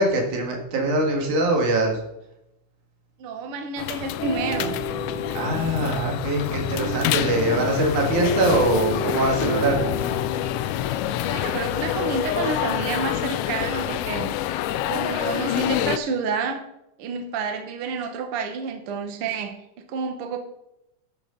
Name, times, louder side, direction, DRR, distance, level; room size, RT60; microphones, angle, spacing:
voice 1, 0.0-2.0 5.3-9.8, right 2 dB, 85° right, 1 dB, 3.5 m, -23 dB
voice 2, 3.2-4.8 11.2-14.3 14.9-16.6 17.0-20.4, right 5 dB, 55° right, 5 dB, 1.9 m, -29 dB
sound 1, 3.8-16.0, left 12 dB, 85° left, 1.4 m, -27 dB
sound 2, 4.2-10.6, left 3 dB, 60° left, 2.4 m, -31 dB
11.5 x 9.7 x 3.9 m, 0.84 s
omnidirectional pair, 3.4 m